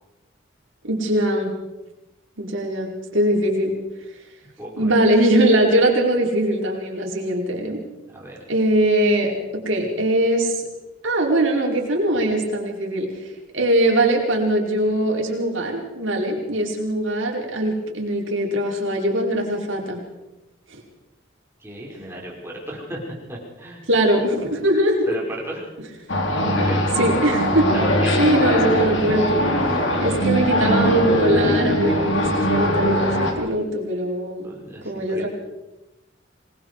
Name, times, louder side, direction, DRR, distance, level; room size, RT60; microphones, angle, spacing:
voice 1, 0.8-1.5 2.4-3.8 4.8-7.8 8.5-10.6 11.0-13.1 13.5-20.0 23.9-25.1 27.0-27.7 28.2-29.4 30.0-34.5 34.8-35.3, right 1 dB, 85° right, -1 dB, 5.0 m, -21 dB
voice 2, 4.6-5.0 8.1-8.4 21.6-23.0 23.3-23.8 25.1-25.7 26.4-26.9 27.7-28.2 29.1-29.3 29.7-30.6 34.4-35.3, right 1 dB, 15° right, -3 dB, 5.7 m, -35 dB
sound 1, 26.1-33.3, equal, 70° left, 3.6 m, -20 dB
26.5 x 20.0 x 4.9 m, 0.99 s
head